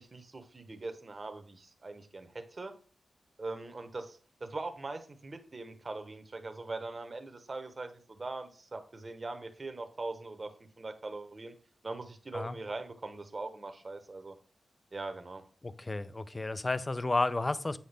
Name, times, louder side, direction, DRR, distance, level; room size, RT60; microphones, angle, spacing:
voice 1, 0.0-2.7 3.4-11.5 11.8-14.3 14.9-15.4, right 3 dB, 40° right, 0.9 m, -41 dB
voice 2, 15.6-17.8, left 2 dB, 25° left, 0.5 m, -32 dB
7.6 x 5.7 x 3.4 m
cardioid pair, 75°, 0 cm